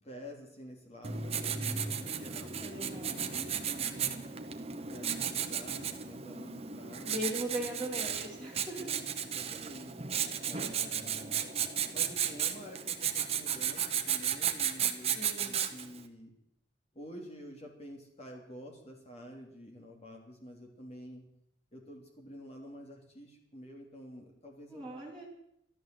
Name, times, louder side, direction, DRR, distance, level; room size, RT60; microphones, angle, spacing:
voice 1, 0.0-4.2 4.8-7.4 8.8-10.0 10.4-11.4 11.9-16.3 16.9-21.2 21.7-24.9, equal, 30° left, 1 dB, 3.4 m, -49 dB
Writing, 1.0-16.0, right 8 dB, 30° right, 1.1 m, -34 dB
voice 2, 2.6-3.3 7.0-9.0 15.2-15.6 24.7-25.3, equal, 5° left, -5 dB, 4.3 m, -39 dB
13.5 x 12.5 x 7.9 m, 0.76 s
head